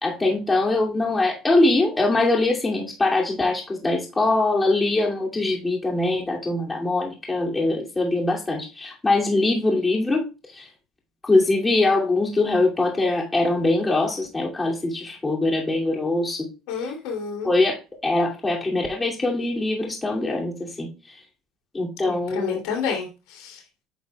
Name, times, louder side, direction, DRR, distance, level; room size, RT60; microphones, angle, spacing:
voice 1, 0.0-10.2 10.5-10.7 11.2-16.5 17.4-21.2 21.7-22.6, left 2 dB, 20° left, -1 dB, 2.5 m, -22 dB
voice 2, 16.7-17.5 22.0-23.8, left 6 dB, 75° left, 0 dB, 2.7 m, -30 dB
9.9 x 6.4 x 2.3 m, 0.29 s
supercardioid pair, 90°, 0 cm